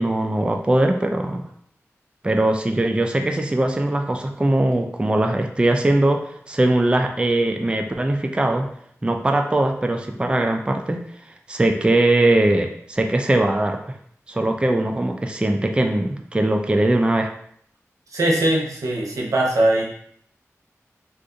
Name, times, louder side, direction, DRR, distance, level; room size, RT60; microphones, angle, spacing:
voice 1, 0.0-1.4 2.2-6.2 6.5-8.7 9.0-11.0 11.5-14.0 14.3-17.3, right 1 dB, 20° right, 4 dB, 0.4 m, -20 dB
voice 2, 18.1-19.8, right 1 dB, 90° right, -2 dB, 0.7 m, -20 dB
2.5 x 2.5 x 3.7 m, 0.65 s
wide cardioid pair, 55°, 5 cm